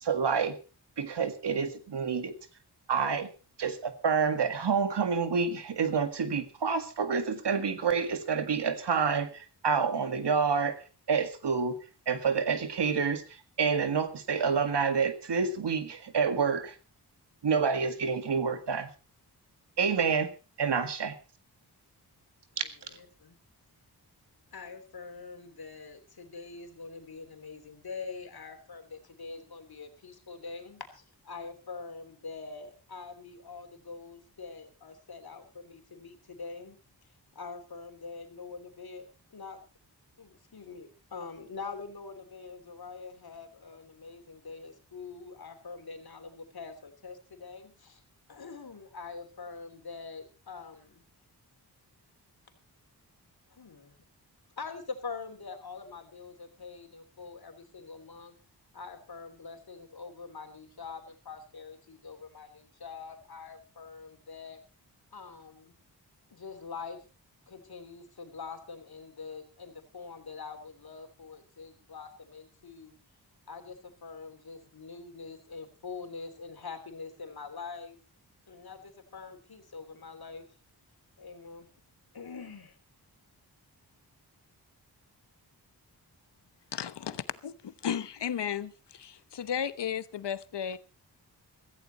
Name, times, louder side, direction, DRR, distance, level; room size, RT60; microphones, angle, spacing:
voice 1, 0.0-0.6 1.0-2.4 2.9-3.3 3.6-10.8 11.1-11.8 12.1-16.8 17.4-18.9 19.8-20.3 20.6-21.1 22.6-22.7, right 5 dB, 80° right, 9 dB, 1.9 m, -28 dB
voice 2, 22.5-23.4 24.5-36.8 37.3-39.6 40.2-48.0 48.3-51.0 53.5-54.0 54.6-58.4 58.7-64.6 65.1-65.7 66.3-67.0 67.5-73.0 73.5-78.0 78.5-80.4 81.2-81.7 82.1-82.8, left 4 dB, 65° left, 6 dB, 3.2 m, -44 dB
voice 3, 86.7-90.8, left 8 dB, 85° left, 15 dB, 1.0 m, -34 dB
16.5 x 15.0 x 4.1 m, 0.33 s
wide cardioid pair, 125°, 40 cm